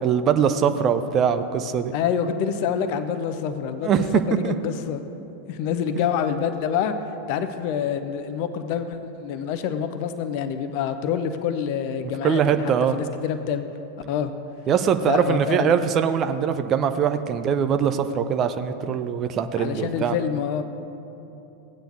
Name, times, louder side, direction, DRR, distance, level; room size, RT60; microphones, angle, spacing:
voice 1, 0.0-1.9 3.8-4.1 4.4-4.5 12.2-13.0 14.7-20.2, right 7 dB, 30° right, 9 dB, 0.5 m, -22 dB
voice 2, 1.9-5.1 5.5-6.9 7.3-13.6 14.1-14.3 15.0-15.8 19.6-20.6, left 8 dB, 45° left, 10 dB, 0.6 m, -27 dB
17.0 x 9.0 x 2.7 m, 2.9 s
figure-of-eight pair, 90°, 0 cm